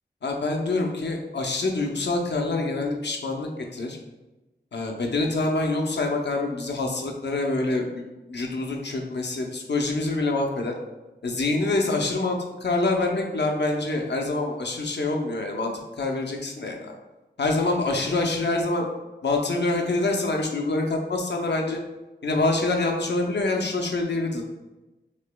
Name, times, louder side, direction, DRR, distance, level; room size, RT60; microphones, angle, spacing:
voice 1, 0.2-4.0 4.7-8.0 8.3-10.7 11.2-16.9 17.4-18.9 19.2-21.8 22.2-24.4, left 2 dB, 65° left, 1 dB, 0.7 m, -26 dB
6.4 x 2.9 x 2.2 m, 1.1 s
wide cardioid pair, 80°, 19 cm